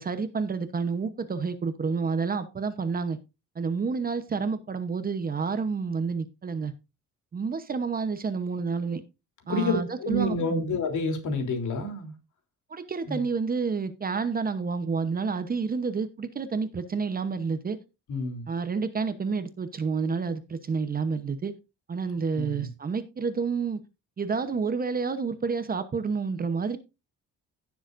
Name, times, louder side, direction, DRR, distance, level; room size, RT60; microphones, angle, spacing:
voice 1, 0.0-3.2 3.5-6.7 7.3-9.0 9.5-10.7 12.7-17.8 18.5-21.5 21.9-23.8 24.2-26.8, right 5 dB, 30° right, 1.0 m, -29 dB
voice 2, 9.5-12.1 13.1-13.3 18.1-18.5 22.4-22.7, left 2 dB, 65° left, 3.5 m, -29 dB
16.5 x 7.2 x 2.6 m
cardioid pair, 160°, 32 cm